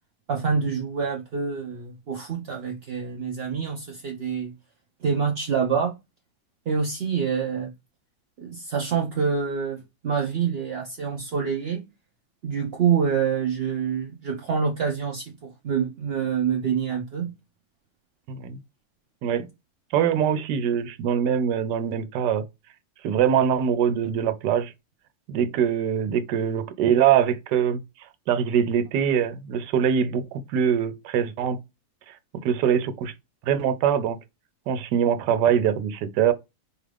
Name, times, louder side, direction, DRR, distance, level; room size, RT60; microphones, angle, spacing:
voice 1, 0.3-4.5 5.0-5.9 6.7-7.7 8.4-11.8 12.4-17.3, right 6 dB, 65° right, 0.6 m, -26 dB
voice 2, 18.3-18.6 19.2-19.5 19.9-22.4 23.0-24.7 25.3-27.8 28.3-31.6 32.4-33.1 33.5-34.2 34.7-36.3, right 8 dB, 85° right, 1.2 m, -23 dB
4.7 x 2.4 x 3.3 m
omnidirectional pair, 1.8 m